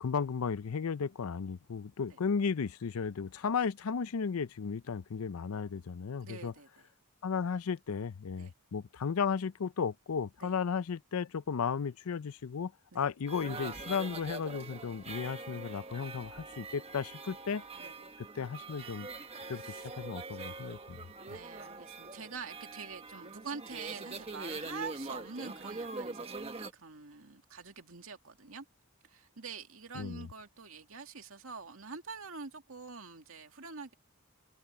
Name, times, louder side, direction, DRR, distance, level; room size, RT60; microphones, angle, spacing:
voice 1, 0.0-6.5 7.2-17.7 18.2-19.1 19.5-21.0 29.9-30.3, left 6 dB, 90° left, 0.5 m, -34 dB
voice 2, 6.2-6.8 8.4-8.5 10.4-10.5 12.9-13.0 17.8-17.9 19.5-19.9 21.2-28.7 29.1-33.9, right 5 dB, 75° right, 2.4 m, -46 dB
sound 1, 13.3-26.7, right 3 dB, 25° right, 1.4 m, -43 dB
head